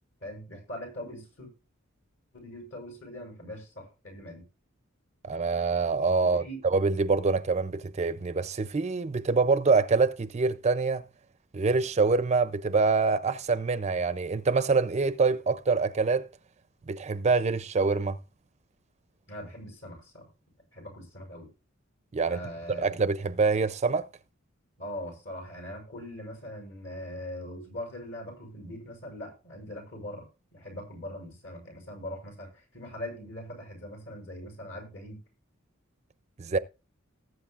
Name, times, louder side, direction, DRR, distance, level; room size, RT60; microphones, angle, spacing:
voice 1, 0.2-1.5 2.3-4.4 6.2-6.6 19.3-20.2 20.7-21.5 22.3-23.0 24.8-35.2, left 1 dB, 65° left, 6.6 m, -41 dB
voice 2, 5.2-11.0 11.5-16.3 16.9-18.2 22.1-22.4 22.8-24.1 36.4-36.6, right 4 dB, 35° right, 0.5 m, -25 dB
19.5 x 7.9 x 2.4 m
head